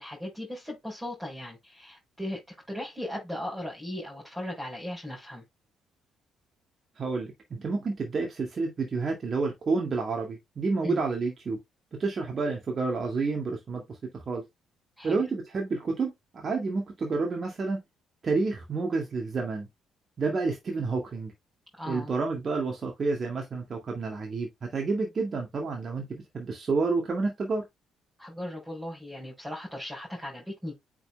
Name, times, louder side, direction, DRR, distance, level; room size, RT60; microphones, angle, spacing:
voice 1, 0.0-2.4 2.7-5.4 10.8-11.0 15.0-15.2 21.8-22.1 28.2-30.8, left 1 dB, 5° right, 4.9 m, -37 dB
voice 2, 7.0-11.6 11.9-14.4 15.0-17.8 18.2-19.7 20.2-21.3 21.9-27.6, right 4 dB, 40° right, 2.0 m, -29 dB
9.0 x 4.8 x 2.2 m
figure-of-eight pair, 45°, 0 cm